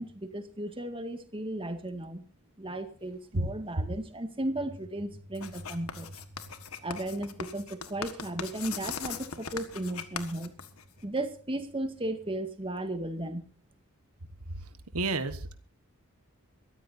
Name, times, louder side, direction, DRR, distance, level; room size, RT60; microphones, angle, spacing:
voice 1, 0.0-2.2 2.6-6.4 6.8-10.5 11.0-13.5, right 1 dB, 25° right, 8 dB, 1.8 m, -35 dB
Writing, 5.3-11.2, left 6 dB, 75° left, 1.7 m, -40 dB
voice 2, 14.9-15.6, right 2 dB, 80° right, 10 dB, 1.4 m, -29 dB
23.5 x 14.0 x 2.7 m, 0.39 s
head